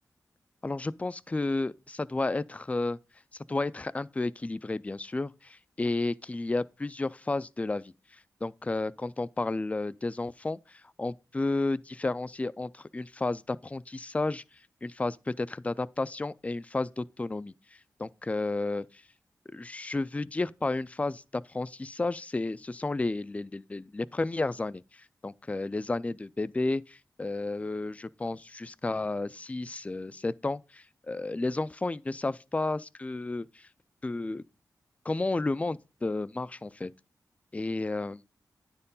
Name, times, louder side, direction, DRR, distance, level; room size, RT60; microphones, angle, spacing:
voice 1, 0.6-3.0 3.5-7.9 8.4-14.4 14.8-17.5 18.0-19.0 19.5-33.7 34.0-34.4 35.1-36.9 37.5-38.2, left 2 dB, 20° left, 0.4 m, -32 dB
9.8 x 4.4 x 5.4 m
cardioid pair, 65°, 7 cm